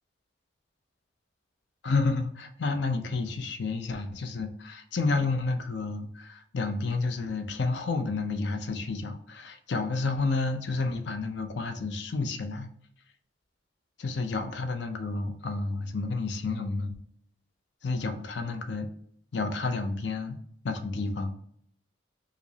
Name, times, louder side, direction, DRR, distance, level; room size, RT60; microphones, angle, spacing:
voice 1, 1.8-12.7 14.0-16.9 17.8-18.9 19.3-20.4 20.6-21.3, left 3 dB, 65° left, 7 dB, 0.5 m, -30 dB
4.9 x 2.0 x 2.7 m, 0.67 s
head